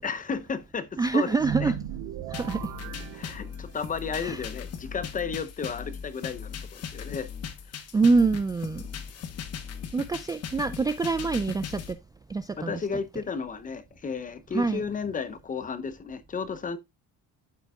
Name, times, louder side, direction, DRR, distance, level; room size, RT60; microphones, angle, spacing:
voice 1, 0.0-1.3 1.6-1.7 3.1-7.3 12.6-16.8, left 5 dB, 25° left, 0.7 m, -33 dB
voice 2, 1.0-1.7 2.3-2.6 4.2-4.4 7.9-8.8 9.9-12.0 12.3-12.7 14.5-14.8, right 4 dB, 10° right, 0.3 m, -25 dB
sound 1, 1.4-3.9, right 9 dB, 75° right, 0.8 m, -36 dB
sound 2, 2.3-11.9, left 7 dB, 45° left, 1.1 m, -38 dB
12.0 x 4.6 x 2.4 m
cardioid pair, 115°, 33 cm